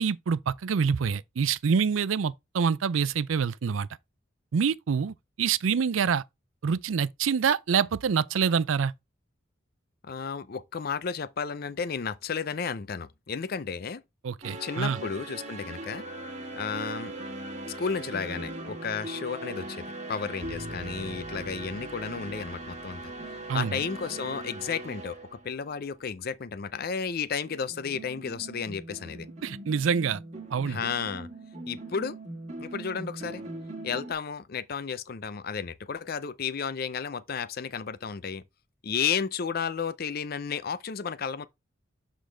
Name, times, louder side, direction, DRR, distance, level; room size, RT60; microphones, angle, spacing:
voice 1, 0.0-3.9 4.5-6.2 6.6-8.9 14.2-15.0 23.5-23.8 29.4-30.2 30.5-30.8, right 6 dB, 90° right, 0.4 m, -26 dB
voice 2, 10.0-14.0 14.6-16.1 16.5-17.1 17.7-23.1 23.5-29.3 30.7-31.3 31.7-32.2 32.6-33.4 33.8-38.4 38.8-41.5, left 6 dB, 50° left, 0.5 m, -33 dB
sound 1, 14.4-26.0 27.4-34.1, right 2 dB, 35° right, 1.5 m, -40 dB
11.5 x 3.9 x 3.3 m
head